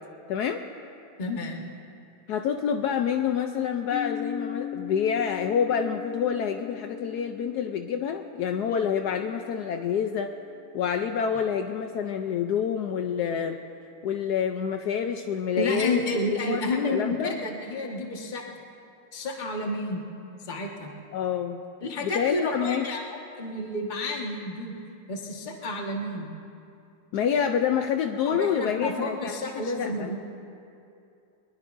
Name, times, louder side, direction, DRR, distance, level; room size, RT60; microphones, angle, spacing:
voice 1, 0.3-0.6 2.3-10.3 10.7-13.6 14.0-15.9 16.5-16.6 16.9-17.3 21.1-21.6 22.0-22.9 27.1-29.4 29.8-30.1, left 8 dB, 80° left, 5 dB, 0.9 m, -27 dB
voice 2, 1.2-1.6 15.6-18.4 19.1-20.0 20.4-20.9 21.8-24.7 25.1-26.3 28.2-30.1, left 2 dB, 25° left, 0 dB, 1.3 m, -30 dB
sound 1, 3.9-11.7, left 9 dB, 45° left, 2.2 m, -40 dB
23.5 x 21.0 x 2.6 m, 2.6 s
omnidirectional pair, 2.4 m